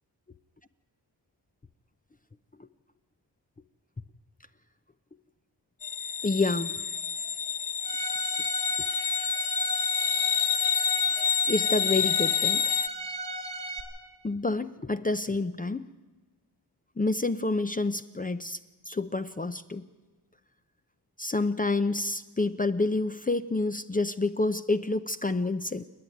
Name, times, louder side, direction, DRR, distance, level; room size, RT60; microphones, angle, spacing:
sound 1, 5.8-12.9, left 7 dB, 50° left, 1.0 m, -28 dB
voice 1, 6.2-6.8 11.5-12.6 14.2-15.8 17.0-18.6 18.9-19.9 21.2-25.8, left 3 dB, 20° left, 10 dB, 0.6 m, -28 dB
Bowed string instrument, 7.8-13.8, right 2 dB, 90° right, 2.7 m, -36 dB
29.0 x 9.9 x 9.4 m, 1.2 s
cardioid pair, 75°, 41 cm